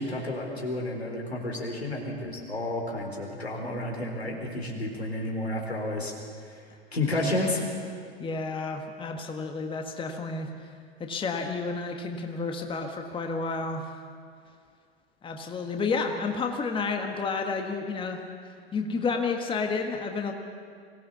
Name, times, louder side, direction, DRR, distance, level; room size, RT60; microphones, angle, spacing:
voice 1, 0.0-6.1 6.4-6.6 6.9-7.8, left 1 dB, 85° left, 0 dB, 4.2 m, -31 dB
voice 2, 8.2-10.7 11.0-14.0 15.2-18.2 18.4-20.3, left 4 dB, 15° left, 4 dB, 1.6 m, -31 dB
23.5 x 17.0 x 6.9 m, 2.2 s
figure-of-eight pair, 95°, 31 cm